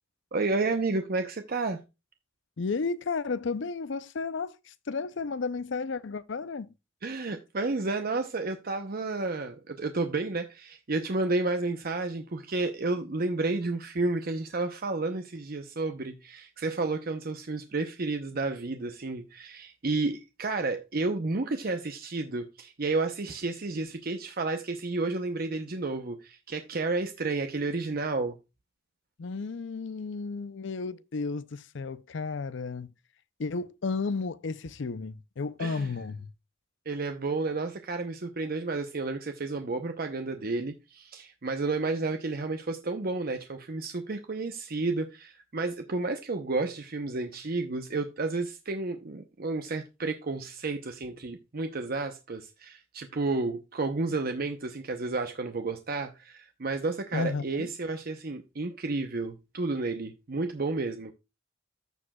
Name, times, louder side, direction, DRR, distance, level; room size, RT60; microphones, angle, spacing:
voice 1, 0.3-1.8 7.0-28.4 35.6-35.9 36.9-61.1, right 3 dB, 50° right, 0.7 m, -31 dB
voice 2, 2.6-6.7 29.2-32.9 33.4-36.3 57.1-57.7, left 4 dB, 65° left, 0.5 m, -33 dB
14.5 x 5.0 x 2.3 m
head